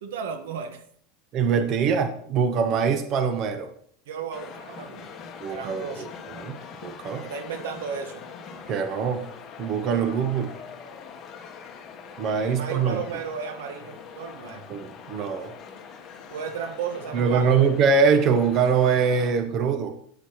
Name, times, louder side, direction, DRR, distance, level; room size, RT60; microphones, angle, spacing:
voice 1, 0.0-0.8 4.1-5.2 5.5-6.1 7.2-8.2 12.4-14.6 16.3-17.5, right 6 dB, 85° right, 7 dB, 1.3 m, -34 dB
voice 2, 1.3-3.7 5.4-6.1 6.4-7.2 8.7-9.2 9.6-10.6 12.2-13.0 14.7-15.5 17.1-19.9, right 6 dB, 40° right, 8 dB, 0.8 m, -23 dB
sound 1, 4.3-19.3, left 6 dB, 30° left, 1.1 m, -43 dB
9.8 x 8.7 x 3.0 m, 0.63 s
supercardioid pair, 145°, 0 cm